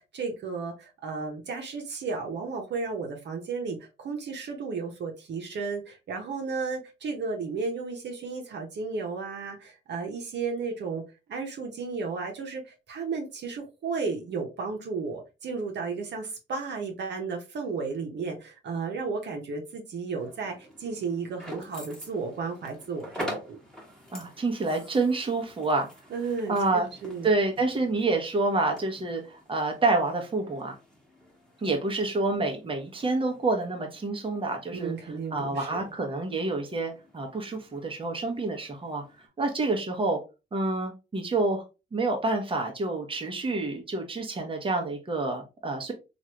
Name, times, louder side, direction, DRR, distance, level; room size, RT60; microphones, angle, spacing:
voice 1, 0.0-11.0 11.3-23.6 26.1-27.3 34.7-35.8, right 4 dB, 65° right, 2 dB, 0.9 m, -33 dB
sound 1, 20.2-39.3, equal, 5° left, 1.3 m, -46 dB
voice 2, 24.1-25.9 26.5-26.9 27.2-30.8 31.6-34.9 35.3-39.0 39.4-40.2 40.5-41.6 41.9-45.9, right 3 dB, 30° right, 2 dB, 0.9 m, -28 dB
3.1 x 2.5 x 2.9 m, 0.28 s
cardioid pair, 75°, 19 cm